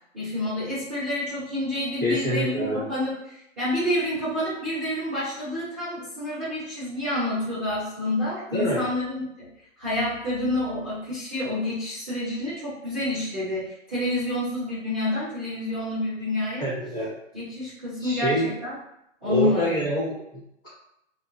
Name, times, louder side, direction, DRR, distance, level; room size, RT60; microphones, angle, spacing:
voice 1, 0.1-9.5 9.8-16.7 17.3-18.7 19.2-19.9, left 1 dB, 5° right, -26 dB, 0.7 m, -28 dB
voice 2, 2.0-2.9 8.5-8.8 16.6-17.2 18.0-18.5 19.2-20.7, equal, 15° left, -12 dB, 1.3 m, -26 dB
2.8 x 2.5 x 2.5 m, 0.77 s
hypercardioid pair, 175°, 39 cm